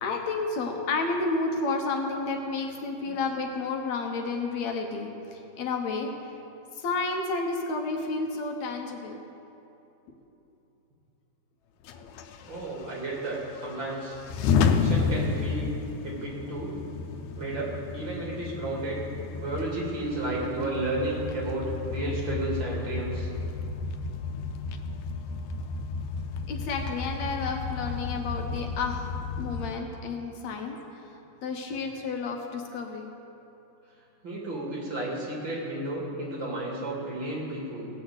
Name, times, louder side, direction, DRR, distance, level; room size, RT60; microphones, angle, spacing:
voice 1, 0.0-6.1 6.8-9.2 26.5-29.1 29.4-30.8 31.4-33.1, left 3 dB, 70° left, 3 dB, 2.2 m, -31 dB
sound 1, 11.8-29.7, left 5 dB, 90° left, 2.1 m, -32 dB
voice 2, 12.5-14.2 14.7-15.7 16.0-16.8 17.4-19.0 19.3-23.3 34.2-37.9, right 2 dB, 40° right, -4 dB, 2.9 m, -32 dB
17.5 x 6.3 x 8.0 m, 3.0 s
omnidirectional pair, 3.4 m